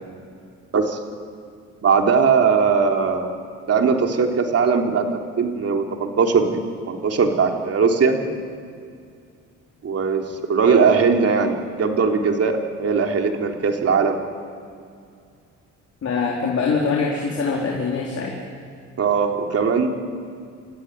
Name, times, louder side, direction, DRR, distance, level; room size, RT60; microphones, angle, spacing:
voice 1, 1.8-3.3 3.7-6.6 6.9-8.2 9.8-14.2 19.0-19.9, right 5 dB, 50° right, 2 dB, 3.4 m, -19 dB
voice 2, 16.0-18.4, left 4 dB, 55° left, -2 dB, 4.3 m, -23 dB
28.5 x 15.0 x 9.9 m, 2.3 s
cardioid pair, 90°, 30 cm